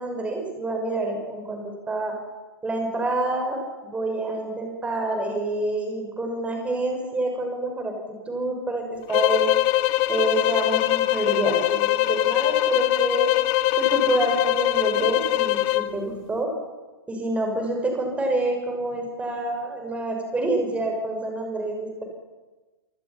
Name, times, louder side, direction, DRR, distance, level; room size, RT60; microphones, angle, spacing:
voice 1, 0.0-2.1 2.6-9.5 10.1-13.3 13.8-16.5 17.1-22.0, right 2 dB, 10° right, 2 dB, 5.9 m, -27 dB
sound 1, 9.1-15.9, left 17 dB, 30° left, 1.0 m, -22 dB
28.5 x 19.5 x 5.9 m, 1.2 s
figure-of-eight pair, 110°, 13 cm